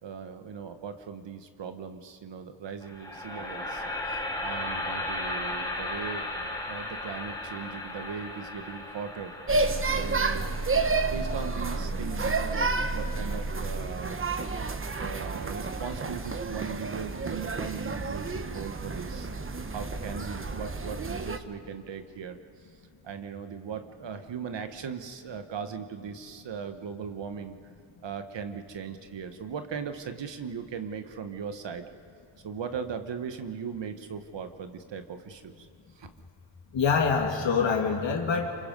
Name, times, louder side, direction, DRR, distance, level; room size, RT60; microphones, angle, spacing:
voice 1, 0.0-6.2 6.7-9.3 9.8-10.5 11.1-14.2 15.0-19.3 19.7-22.4 23.0-27.6 28.0-31.8 32.4-35.7 36.0-36.1, right 6 dB, 60° right, 8 dB, 1.3 m, -38 dB
sound 1, 2.8-12.9, left 2 dB, 10° left, 4.5 m, -36 dB
sound 2, 9.5-21.4, right 3 dB, 25° right, 1.0 m, -30 dB
voice 2, 36.7-38.5, left 5 dB, 65° left, 1 dB, 2.7 m, -25 dB
27.0 x 24.5 x 5.3 m, 2.6 s
cardioid pair, 105°, 48 cm